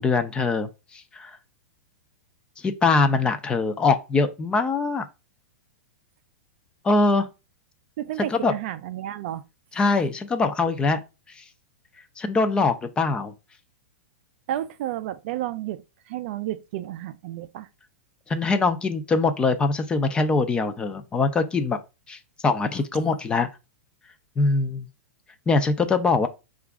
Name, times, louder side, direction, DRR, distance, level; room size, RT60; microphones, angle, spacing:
voice 1, 0.0-1.4 2.6-5.1 6.8-7.3 8.3-8.5 9.7-11.0 11.3-11.4 12.2-13.3 18.3-21.8 22.1-23.5 24.4-24.9 25.5-26.3, left 3 dB, 15° left, 0.4 m, -23 dB
voice 2, 8.0-9.4 14.5-17.7 22.7-22.8, right 13 dB, 50° right, 0.4 m, -31 dB
4.8 x 2.4 x 3.4 m
hypercardioid pair, 145°, 7 cm